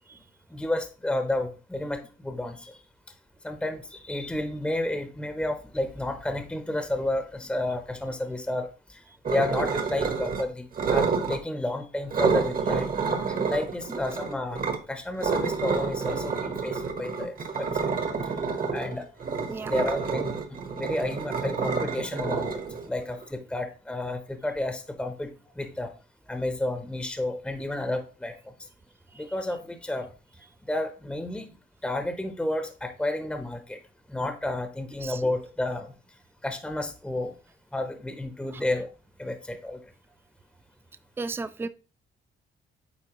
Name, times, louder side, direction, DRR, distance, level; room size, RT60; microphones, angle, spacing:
voice 1, 0.5-2.8 3.4-12.9 13.3-17.9 18.7-19.1 19.7-25.9 26.3-28.5 29.2-30.1 30.6-31.5 31.8-33.8 34.1-35.9 36.4-37.3 37.7-38.9 39.2-39.8, left 1 dB, 5° left, 0.8 m, -31 dB
sound 1, 9.3-10.4 10.7-11.4 12.1-14.8 15.2-23.2, right 5 dB, 45° right, 1.2 m, -29 dB
voice 2, 41.2-41.7, right 3 dB, 10° right, 0.4 m, -35 dB
8.2 x 4.3 x 3.0 m
cardioid pair, 90°, 20 cm